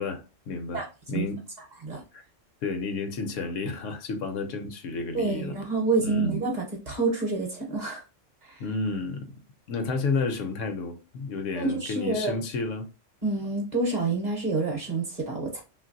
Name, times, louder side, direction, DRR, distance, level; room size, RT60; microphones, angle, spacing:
voice 1, 0.0-0.8 1.1-1.4 2.1-2.2 2.6-5.6 6.0-6.3 8.6-9.3 9.7-12.9, left 4 dB, 80° left, 0.9 m, -31 dB
voice 2, 0.7-1.3 1.8-2.0 5.1-8.0 8.4-8.6 11.6-12.4 13.2-15.6, right 3 dB, 40° right, 0.8 m, -28 dB
3.1 x 2.5 x 2.5 m
omnidirectional pair, 1.3 m